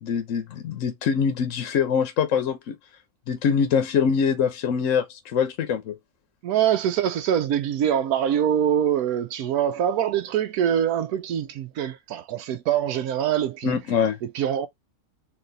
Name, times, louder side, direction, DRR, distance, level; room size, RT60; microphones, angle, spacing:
voice 1, 0.0-2.8 3.3-6.0 13.6-14.2, left 7 dB, 65° left, 1.1 m, -24 dB
voice 2, 6.4-13.7 14.2-14.7, right 9 dB, 85° right, 1.1 m, -24 dB
4.0 x 2.6 x 3.9 m
omnidirectional pair, 1.6 m